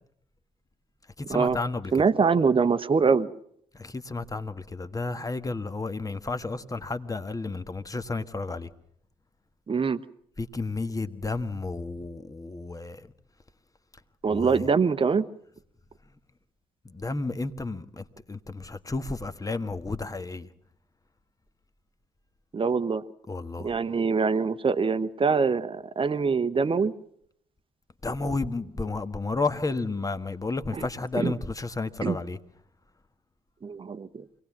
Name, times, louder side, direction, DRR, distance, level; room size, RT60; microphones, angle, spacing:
voice 1, 1.2-2.0 3.7-8.7 10.4-13.1 14.3-14.7 16.8-20.5 23.3-23.7 28.0-32.4, left 3 dB, 20° left, 1.5 m, -32 dB
voice 2, 1.9-3.3 9.7-10.0 14.2-15.3 22.5-23.0 23.6-26.9 30.7-30.9 31.1-31.3 32.0-32.2 33.6-34.3, right 5 dB, 30° right, 1.0 m, -24 dB
26.0 x 18.5 x 7.3 m
figure-of-eight pair, 40°, 17 cm